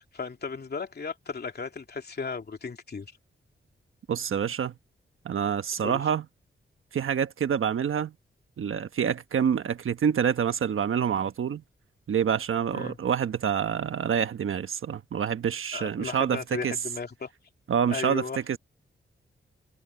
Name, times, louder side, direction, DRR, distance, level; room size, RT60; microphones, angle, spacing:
voice 1, 0.0-3.1 5.8-6.0 12.7-13.0 15.7-17.3 17.9-18.4, left 5 dB, 50° left, 2.7 m, -35 dB
voice 2, 4.1-4.7 5.2-6.2 6.9-8.1 8.6-11.6 12.1-16.8 17.7-18.2 18.5-18.6, right 8 dB, 75° right, 1.2 m, -27 dB
cardioid pair, 85°, 21 cm